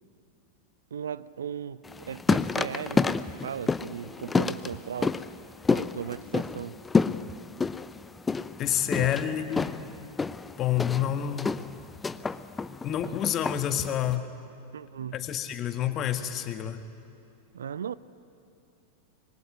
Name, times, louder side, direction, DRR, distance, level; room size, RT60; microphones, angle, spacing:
voice 1, 0.9-5.2 5.7-6.8 9.0-9.1 14.7-15.2 17.5-17.9, right 8 dB, 65° right, 18 dB, 0.6 m, -37 dB
sound 1, 1.8-14.1, left 4 dB, 15° left, 0.7 m, -29 dB
voice 2, 8.6-9.8 10.6-11.4 12.8-14.3 15.1-16.8, left 10 dB, 30° left, 8 dB, 1.8 m, -28 dB
25.5 x 22.5 x 9.8 m, 2.6 s
figure-of-eight pair, 90°, 0 cm